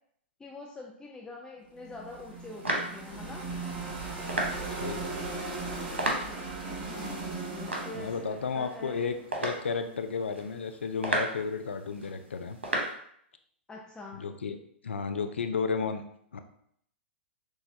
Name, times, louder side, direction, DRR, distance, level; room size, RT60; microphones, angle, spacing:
voice 1, 0.4-3.4 7.5-9.0 13.7-14.2, left 2 dB, 10° left, -2 dB, 0.5 m, -44 dB
sound 1, 1.7-9.8, right 3 dB, 50° right, 1.5 m, -38 dB
Footsteps Sneakers Tile Slow, 2.1-12.9, right 1 dB, 90° right, 1.0 m, -37 dB
voice 2, 4.8-5.2 8.0-12.6 14.2-14.6 14.8-16.0 16.3-16.4, left 5 dB, 85° left, 8 dB, 0.4 m, -33 dB
6.2 x 2.3 x 2.7 m, 0.67 s
hypercardioid pair, 110°, 6 cm